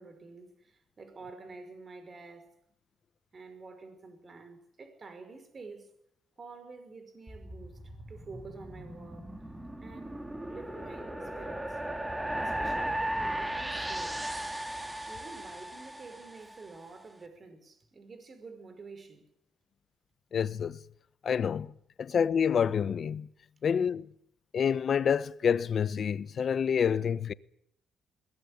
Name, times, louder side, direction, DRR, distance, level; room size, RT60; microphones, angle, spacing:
voice 1, 0.0-2.6 3.3-5.9 6.4-7.8 8.1-9.3 9.8-11.8 12.3-14.3 15.1-19.3, right 4 dB, 40° right, 5.3 m, -49 dB
sound 1, 7.3-16.6, right 1 dB, 10° right, 3.0 m, -36 dB
voice 2, 20.3-20.8 21.2-21.7 22.0-23.3 23.6-24.1 24.5-27.3, left 7 dB, 50° left, 1.0 m, -28 dB
21.5 x 19.0 x 9.8 m
cardioid pair, 90°, 0 cm